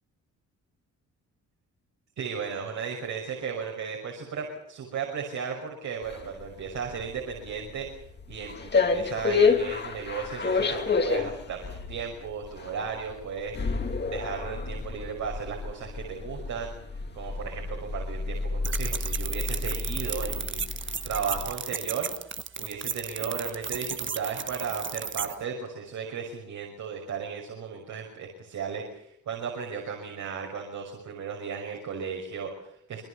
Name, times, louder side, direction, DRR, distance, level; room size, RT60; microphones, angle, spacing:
voice 1, 2.2-11.6 11.9-13.5 14.1-20.6 21.0-22.1 22.6-33.0, right 6 dB, 70° right, 1 dB, 6.0 m, -35 dB
sound 1, 6.0-21.5, left 4 dB, 35° left, 2.8 m, -30 dB
sound 2, 18.6-25.3, right 7 dB, 40° right, 1.4 m, -34 dB
27.5 x 21.5 x 7.1 m, 0.68 s
cardioid pair, 90°, 30 cm